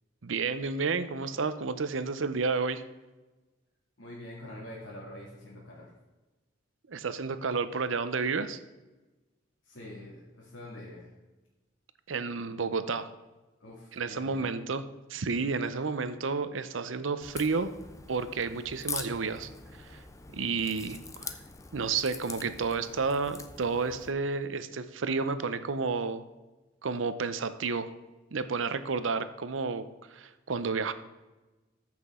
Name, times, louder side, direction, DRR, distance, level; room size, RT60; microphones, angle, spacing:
voice 1, 0.2-2.8 6.9-8.6 12.1-13.1 13.9-14.8 15.1-17.7 18.1-19.5 19.8-20.0 20.3-21.3 21.7-26.2 26.8-27.9 28.3-29.9 30.1-30.9, right 4 dB, 85° right, 12 dB, 0.7 m, -31 dB
voice 2, 4.0-5.9 9.6-11.1 13.6-14.5 19.9-20.0, left 1 dB, 80° left, -6 dB, 2.4 m, -45 dB
Crack, 17.2-24.1, left 4 dB, 15° left, 0.6 m, -43 dB
14.0 x 6.0 x 3.7 m, 1.1 s
head